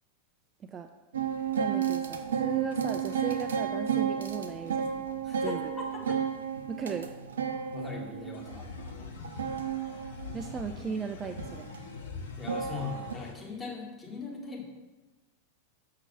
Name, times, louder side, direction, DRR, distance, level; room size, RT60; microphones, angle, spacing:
sound 1, 1.1-13.1, right 7 dB, 65° right, 0.7 m, -33 dB
voice 1, 1.5-5.1 5.4-5.7 6.7-7.1 10.3-11.7, right 5 dB, 25° right, 6 dB, 0.4 m, -37 dB
voice 2, 5.2-6.2 7.7-8.7 12.2-14.6, left 5 dB, 15° left, -3 dB, 2.1 m, -40 dB
sound 2, 8.3-13.3, left 5 dB, 60° left, 1.0 m, -44 dB
6.7 x 6.2 x 5.6 m, 1.2 s
figure-of-eight pair, 90°, 0 cm